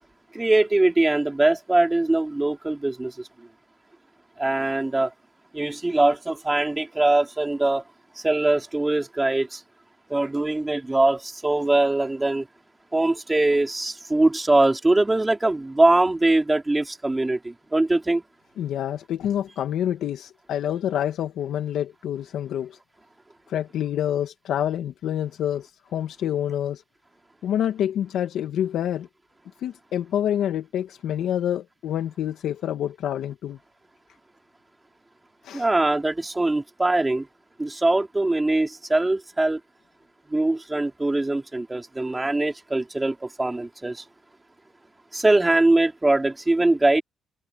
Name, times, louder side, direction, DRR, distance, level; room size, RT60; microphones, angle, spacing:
voice 1, 0.3-3.3 4.4-5.1 5.5-7.8 8.2-9.6 10.1-12.5 12.9-18.2 35.5-37.3 37.6-39.6 40.3-44.0 45.1-47.0, right 2 dB, 15° right, 3.8 m, -22 dB
voice 2, 18.6-22.8 23.5-26.8 27.4-29.1 29.6-33.6 35.4-35.7, left 10 dB, 75° left, 2.0 m, -27 dB
cardioid pair, 90°, 0 cm